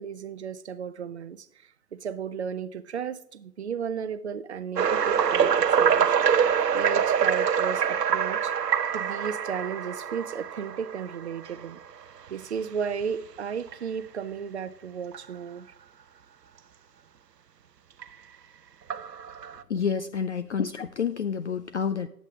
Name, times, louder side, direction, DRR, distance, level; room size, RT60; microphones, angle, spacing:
voice 1, 0.0-1.5 1.9-6.3 6.7-8.5 8.9-11.8 12.3-15.7, right 7 dB, 45° right, 0.6 m, -34 dB
sound 1, 4.8-11.6 12.3-12.4 13.0-13.1 13.7-13.8 15.1-15.2 18.0-18.1 18.9-19.6, right 7 dB, 90° right, 0.7 m, -25 dB
voice 2, 19.7-22.1, left 6 dB, 50° left, 0.4 m, -29 dB
9.8 x 8.2 x 3.6 m
figure-of-eight pair, 140°, 47 cm